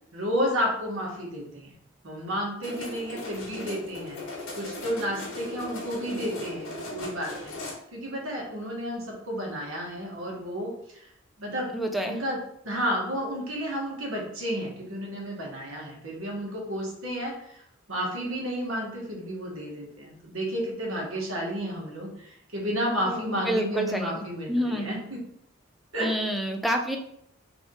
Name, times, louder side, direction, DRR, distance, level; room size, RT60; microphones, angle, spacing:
voice 1, 0.1-1.7 2.0-4.2 4.6-7.5 7.9-11.1 11.4-11.7 12.1-12.4 12.6-17.6 17.9-25.2 25.9-26.1, equal, 85° right, -2 dB, 1.5 m, -31 dB
sound 1, 2.6-7.7, left 2 dB, 70° left, 1.4 m, -38 dB
voice 2, 11.7-12.2 23.1-24.9 26.0-27.0, equal, ahead, 3 dB, 0.4 m, -28 dB
3.6 x 3.5 x 3.8 m, 0.73 s
head